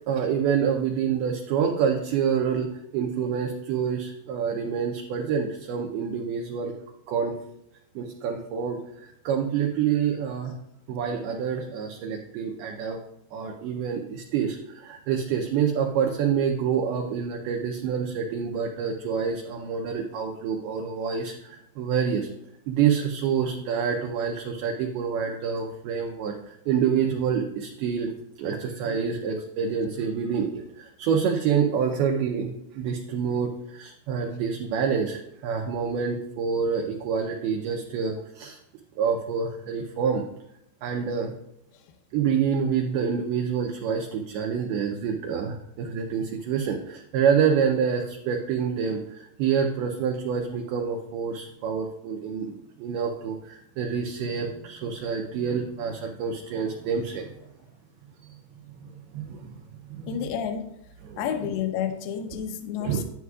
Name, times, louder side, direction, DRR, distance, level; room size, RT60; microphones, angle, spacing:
voice 1, 0.1-6.7 7.1-7.4 8.0-10.5 10.9-13.0 13.3-22.3 22.7-28.1 28.4-38.6 39.0-40.2 40.8-41.3 42.1-52.5 52.8-57.3 58.2-58.4 58.8-59.6 59.9-60.1 61.0-61.3 62.8-63.0, right 7 dB, 90° right, 2 dB, 2.2 m, -27 dB
voice 2, 60.1-60.7 61.2-63.0, left 8 dB, 75° left, 6 dB, 2.4 m, -30 dB
10.5 x 9.4 x 2.4 m, 0.80 s
omnidirectional pair, 5.3 m